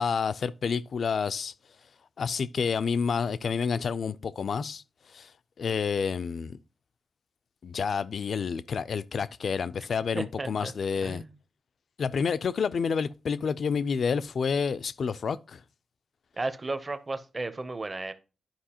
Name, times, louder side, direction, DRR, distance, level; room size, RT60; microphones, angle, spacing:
voice 1, 0.0-1.5 2.2-4.8 5.1-5.3 5.6-6.6 7.6-11.2 12.0-15.6, left 6 dB, 70° left, 0.3 m, -29 dB
voice 2, 10.1-10.7 11.0-11.3 16.4-18.1, right 2 dB, 30° right, 0.7 m, -34 dB
10.5 x 4.8 x 2.9 m
cardioid pair, 85°, 0 cm